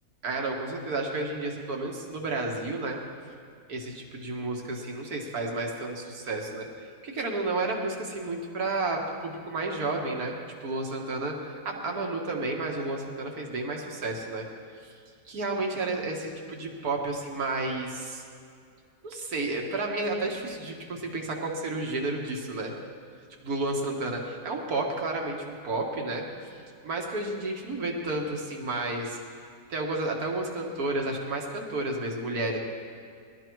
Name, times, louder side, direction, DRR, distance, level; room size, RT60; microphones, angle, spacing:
voice 1, 0.2-3.0 3.7-6.7 7.0-14.5 14.8-14.9 15.3-18.2 19.0-22.7 23.4-26.2 26.8-29.2 29.7-32.6, right 2 dB, 75° right, 1 dB, 2.0 m, -31 dB
20.0 x 12.5 x 4.6 m, 2.3 s
omnidirectional pair, 1.6 m